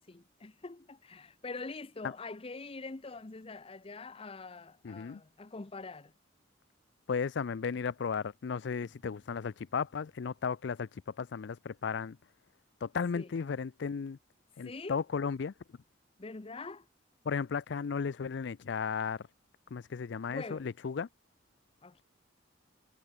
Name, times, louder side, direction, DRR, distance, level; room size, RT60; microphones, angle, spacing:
voice 1, 0.0-6.1 13.1-13.4 14.6-15.0 16.2-16.9 20.3-20.7 21.8-22.0, left 3 dB, 30° left, 0.7 m, -44 dB
voice 2, 4.8-5.2 7.1-10.9 11.2-12.2 12.8-14.2 14.6-15.5 17.3-19.2 19.7-21.1, left 6 dB, 65° left, 0.4 m, -35 dB
sound 1, 8.8-13.9, equal, 15° left, 7.3 m, -72 dB
head